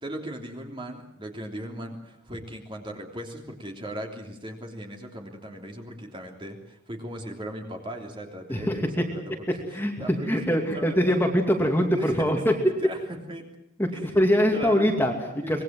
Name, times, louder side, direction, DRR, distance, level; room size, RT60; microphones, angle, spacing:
voice 1, 0.0-11.1 11.9-12.3 12.6-13.5 13.9-14.1 14.5-14.9 15.4-15.6, equal, 25° right, 2 dB, 3.2 m, -38 dB
voice 2, 8.5-9.0 9.7-12.5 13.8-15.6, equal, 10° left, 2 dB, 2.5 m, -23 dB
25.0 x 21.0 x 7.7 m, 0.84 s
head